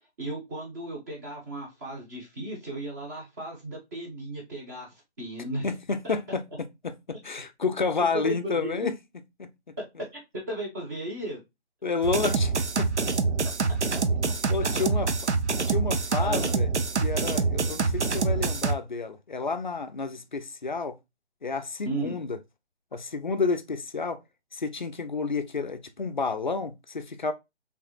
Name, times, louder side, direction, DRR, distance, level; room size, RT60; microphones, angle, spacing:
voice 1, 0.2-5.7 6.0-6.1 8.1-8.9 9.8-10.2 10.5-11.4 13.9-14.3 14.6-14.9 16.2-16.5 21.9-22.2, right 1 dB, 15° right, 0.9 m, -35 dB
voice 2, 5.6-8.9 9.4-9.8 11.8-13.2 14.5-15.1 15.7-16.7 17.0-21.0 21.4-22.4 22.9-24.2 24.5-27.3, left 4 dB, 45° left, 0.4 m, -30 dB
sound 1, 12.0-18.7, right 4 dB, 80° right, 0.7 m, -26 dB
4.6 x 3.4 x 2.2 m
figure-of-eight pair, 145°, 34 cm